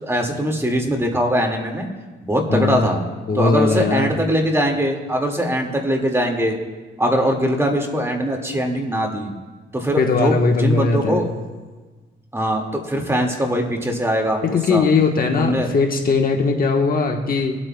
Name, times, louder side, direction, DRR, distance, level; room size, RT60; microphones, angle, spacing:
voice 1, 0.0-1.9 2.2-3.0 3.3-6.6 7.0-9.3 9.7-11.3 12.3-14.4 14.7-14.9 15.4-15.7, equal, 15° right, 1 dB, 2.0 m, -21 dB
voice 2, 2.5-2.8 3.3-4.1 10.0-11.3 14.4-17.6, left 4 dB, 45° left, 2 dB, 1.2 m, -19 dB
25.5 x 8.8 x 2.3 m, 1.3 s
cardioid pair, 90°, 20 cm